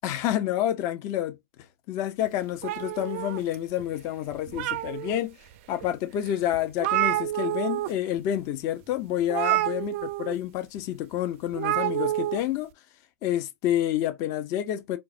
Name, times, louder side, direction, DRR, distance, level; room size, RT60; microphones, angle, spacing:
voice 1, 0.0-1.4 1.9-5.4 5.7-12.7 13.2-15.0, left 12 dB, 35° left, 0.5 m, -29 dB
sound 1, 2.6-3.8 4.3-5.2 5.8-5.9 6.3-6.4 6.5-7.9 8.2-8.4 9.3-10.3 11.5-12.4, right 16 dB, 45° right, 0.4 m, -28 dB
4.5 x 2.1 x 2.5 m
hypercardioid pair, 130°, 9 cm